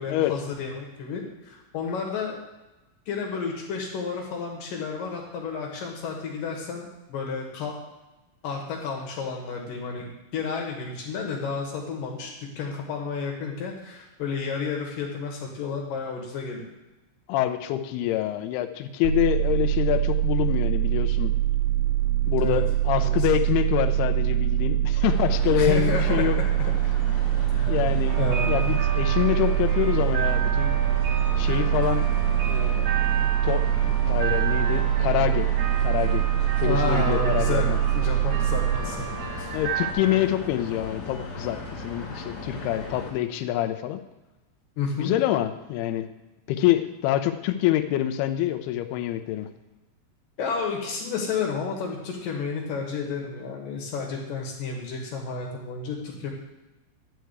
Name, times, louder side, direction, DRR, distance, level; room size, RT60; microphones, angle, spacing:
voice 1, 0.0-2.4 3.1-7.7 8.4-16.7 22.4-22.6 22.9-23.4 25.6-26.7 27.5-27.8 28.2-28.7 36.6-39.1 39.4-39.5 44.8-45.1 50.4-56.3, left 5 dB, 60° left, 0 dB, 2.5 m, -31 dB
voice 2, 17.3-21.3 22.3-26.4 27.7-28.2 28.5-30.8 31.4-32.1 32.5-32.9 33.4-35.5 35.8-36.2 36.6-37.8 39.5-44.0 45.0-46.1 46.5-49.5, left 13 dB, 85° left, 7 dB, 2.4 m, -26 dB
sound 1, 19.0-38.8, right 14 dB, 80° right, 2.8 m, -24 dB
sound 2, 25.0-43.1, left 3 dB, 30° left, 2.2 m, -36 dB
sound 3, 28.1-39.9, right 5 dB, 60° right, 2.5 m, -33 dB
11.5 x 4.7 x 8.0 m, 1.1 s
omnidirectional pair, 5.1 m